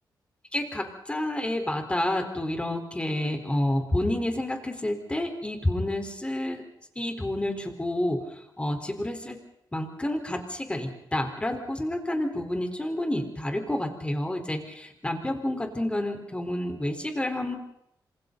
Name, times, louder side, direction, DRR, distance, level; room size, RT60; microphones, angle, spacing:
voice 1, 0.5-6.7 7.0-9.4 9.7-17.6, left 1 dB, 15° left, 5 dB, 4.2 m, -29 dB
27.0 x 27.0 x 4.0 m, 0.77 s
wide cardioid pair, 110°, 8 cm